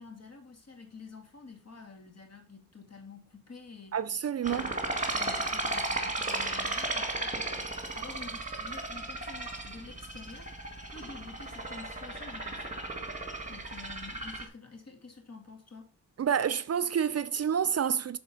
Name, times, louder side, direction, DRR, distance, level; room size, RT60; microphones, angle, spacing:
voice 1, 0.0-4.0 4.5-4.8 5.1-7.6 7.9-10.5 10.9-13.1 13.5-15.9, left 4 dB, 50° left, 2.3 m, -49 dB
voice 2, 3.9-4.7 16.2-18.2, right 8 dB, 50° right, 0.5 m, -28 dB
sound 1, 4.4-14.5, right 2 dB, 20° right, 2.0 m, -35 dB
6.6 x 4.2 x 5.5 m
cardioid pair, 50°, 34 cm